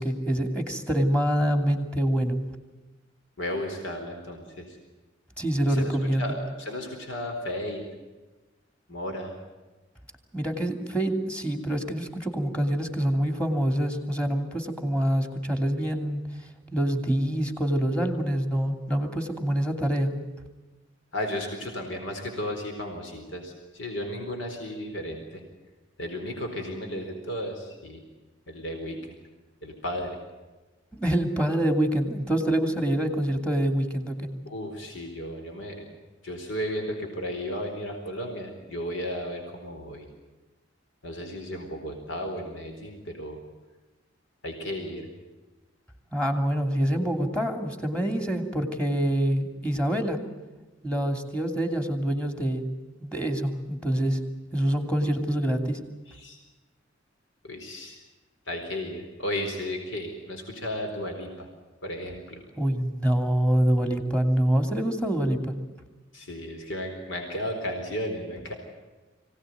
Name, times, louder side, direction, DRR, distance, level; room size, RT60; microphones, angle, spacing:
voice 1, 0.0-2.4 5.4-6.3 10.3-16.2 16.7-20.1 30.9-34.3 46.1-50.2 50.8-52.6 53.0-54.2 54.5-55.8 62.6-65.5, right 1 dB, 5° left, 6 dB, 2.8 m, -26 dB
voice 2, 3.4-4.8 5.6-7.9 8.9-9.3 21.1-25.4 26.0-28.0 28.5-29.0 29.6-30.2 34.5-35.9 36.2-40.1 41.0-43.4 44.4-45.1 56.1-56.4 57.4-58.0 58.5-61.5 61.8-62.4 66.1-68.5, left 1 dB, 75° left, 3 dB, 4.2 m, -34 dB
24.5 x 17.5 x 9.4 m, 1.2 s
head